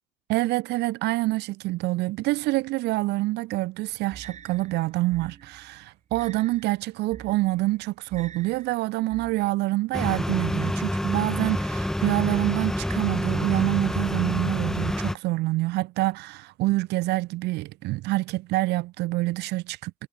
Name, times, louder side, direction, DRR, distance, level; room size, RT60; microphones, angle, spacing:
voice 1, 0.3-19.9, right 19 dB, 80° right, 0.7 m, -26 dB
sound 1, 4.1-9.5, right 8 dB, 45° right, 4.5 m, -47 dB
sound 2, 9.9-15.2, left 1 dB, 5° left, 0.4 m, -27 dB
cardioid pair, 110°, 17 cm